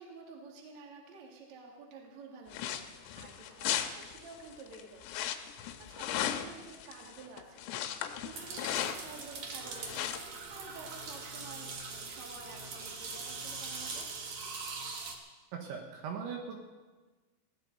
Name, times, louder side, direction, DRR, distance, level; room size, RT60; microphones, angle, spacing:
voice 1, 0.0-14.1, right 4 dB, 45° right, 0 dB, 2.8 m, -51 dB
sound 1, 2.5-9.5 9.8-10.2, left 10 dB, 85° left, 3.4 m, -37 dB
sound 2, 8.3-15.1, right 4 dB, 90° right, 1.5 m, -42 dB
voice 2, 15.6-16.6, right 6 dB, 70° right, 1 dB, 3.5 m, -39 dB
20.5 x 16.0 x 4.1 m, 1.3 s
omnidirectional pair, 6.0 m